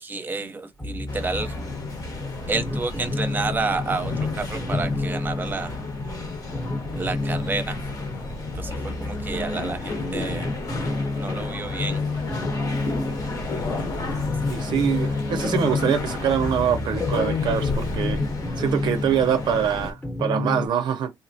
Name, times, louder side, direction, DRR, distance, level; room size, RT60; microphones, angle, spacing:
voice 1, 0.0-1.6 2.5-5.7 7.0-7.8 8.5-10.5 11.1-12.0, right 3 dB, 25° right, 0.7 m, -30 dB
sound 1, 0.8-20.7, left 2 dB, 15° left, 0.9 m, -31 dB
sound 2, 1.1-19.9, left 3 dB, 50° left, 1.1 m, -30 dB
Fire, 11.3-15.0, left 1 dB, 75° left, 0.9 m, -45 dB
voice 2, 14.5-18.2 18.6-21.1, right 8 dB, 75° right, 0.4 m, -24 dB
3.7 x 2.0 x 2.6 m
cardioid pair, 125°, 8 cm